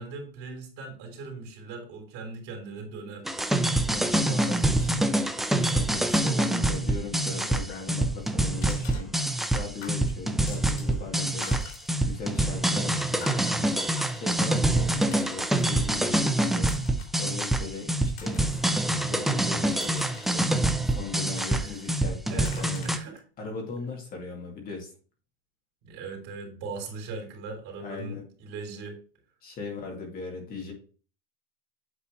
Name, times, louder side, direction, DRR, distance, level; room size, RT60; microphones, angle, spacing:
voice 1, 0.0-3.3 21.5-21.8 22.3-23.2 25.8-29.0, right 3 dB, 45° right, 2 dB, 3.4 m, -39 dB
sound 1, 3.3-23.0, right 1 dB, ahead, 0.3 m, -26 dB
voice 2, 3.9-9.1 9.5-11.6 12.0-13.8 14.1-16.8 17.2-20.5 20.8-22.9 23.4-24.9 27.8-28.3 29.4-30.7, left 4 dB, 30° left, 1 dB, 2.2 m, -38 dB
sound 2, 6.4-8.1 8.6-9.6 9.8-11.0 11.3-15.9 16.6-17.2 17.8-18.8 19.3-20.9 21.3-22.0 22.4-23.2, left 6 dB, 90° left, 2.8 m, -47 dB
8.5 x 4.0 x 4.4 m, 0.38 s
supercardioid pair, 155°, 30 cm